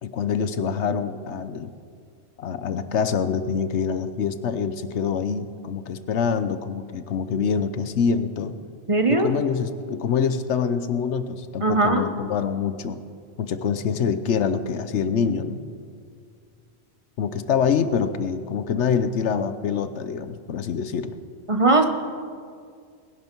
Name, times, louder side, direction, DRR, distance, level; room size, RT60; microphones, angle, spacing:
voice 1, 0.0-1.7 2.4-8.6 9.1-13.0 13.4-15.6 17.2-21.2, left 6 dB, 85° left, 11 dB, 1.1 m, -25 dB
voice 2, 8.9-9.3 11.6-12.0 21.5-21.8, right 3 dB, 30° right, 5 dB, 0.9 m, -19 dB
20.5 x 11.0 x 4.5 m, 2.2 s
omnidirectional pair, 1.1 m